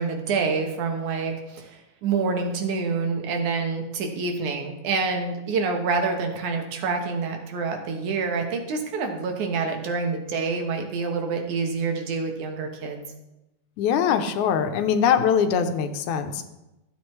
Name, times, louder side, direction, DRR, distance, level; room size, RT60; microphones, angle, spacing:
voice 1, 0.0-13.0, right 4 dB, 85° right, 3 dB, 2.8 m, -27 dB
voice 2, 13.8-16.5, left 7 dB, 85° left, 7 dB, 2.3 m, -22 dB
14.5 x 8.0 x 3.2 m, 0.96 s
omnidirectional pair, 3.4 m